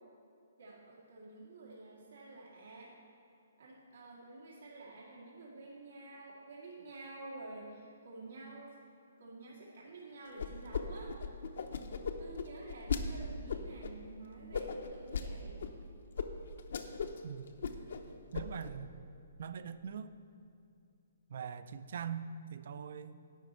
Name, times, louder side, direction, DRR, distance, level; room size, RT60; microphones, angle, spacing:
voice 1, 0.6-2.9 3.6-8.7 9.2-11.1 12.2-15.6, right 2 dB, 85° right, -5 dB, 1.8 m, -50 dB
sound 1, 10.4-10.8 11.1-13.0 13.5-13.9 14.5-15.3 15.6-15.7 16.2-16.3 16.6-17.2 17.5-18.0 18.3-18.7, left 6 dB, 65° left, 0.7 m, -36 dB
voice 2, 18.3-18.9 19.4-20.1 21.3-23.2, right 7 dB, 50° right, 13 dB, 0.4 m, -42 dB
11.0 x 4.2 x 8.0 m, 2.7 s
hypercardioid pair, 170°, 0 cm